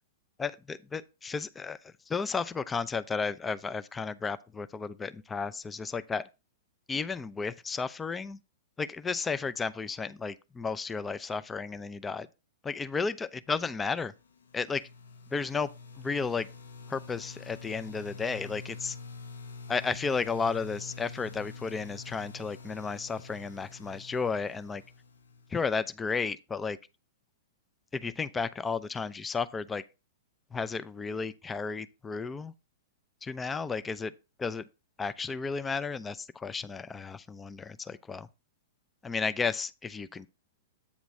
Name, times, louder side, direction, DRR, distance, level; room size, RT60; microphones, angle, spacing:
voice 1, 0.4-6.3 6.9-8.4 8.8-12.3 12.6-14.1 14.5-14.9 15.3-15.7 16.0-16.5 16.9-19.0 19.7-24.8 25.5-26.8 27.9-29.8 30.5-32.5 33.2-34.1 34.4-34.7 35.0-38.3 39.0-40.3, left 5 dB, 15° left, 0.4 m, -33 dB
sound 1, 14.1-25.9, left 4 dB, 65° left, 0.7 m, -46 dB
8.5 x 3.0 x 6.2 m
figure-of-eight pair, 105°, 0 cm